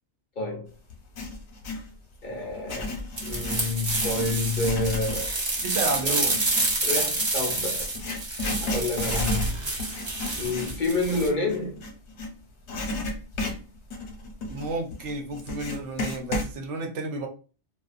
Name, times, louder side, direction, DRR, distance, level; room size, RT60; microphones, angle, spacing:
voice 1, 0.4-0.7 2.2-5.3 6.0-6.2 6.8-7.9 8.6-9.5 10.4-11.8, left 2 dB, 50° left, 0.7 m, -29 dB
Writing, 0.9-1.9 2.5-12.3 12.7-16.5, left 1 dB, 75° left, 1.0 m, -33 dB
sound 1, 3.2-11.3, right 2 dB, 30° right, 0.5 m, -28 dB
voice 2, 5.6-6.4 14.5-17.3, right 3 dB, 80° right, 1.0 m, -31 dB
2.4 x 2.3 x 2.4 m
omnidirectional pair, 1.2 m